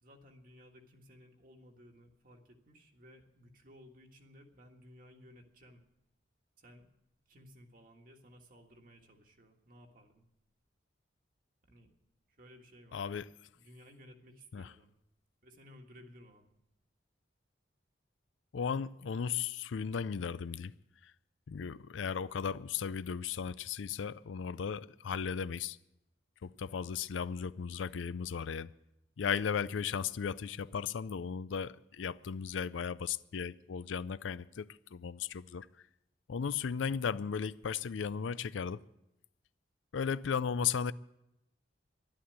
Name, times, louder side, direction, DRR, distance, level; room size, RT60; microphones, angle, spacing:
voice 1, 0.0-5.8 6.6-6.9 7.3-10.3 11.6-11.9 12.3-13.0 13.5-14.9 15.4-16.5, equal, 45° right, 1.6 m, -57 dB
voice 2, 12.9-13.3 14.5-14.7 18.5-20.7 21.0-21.1 21.5-25.8 26.4-28.7 29.2-35.7 36.3-38.8 39.9-40.9, left 6 dB, 90° left, 0.4 m, -36 dB
11.5 x 11.5 x 9.0 m
head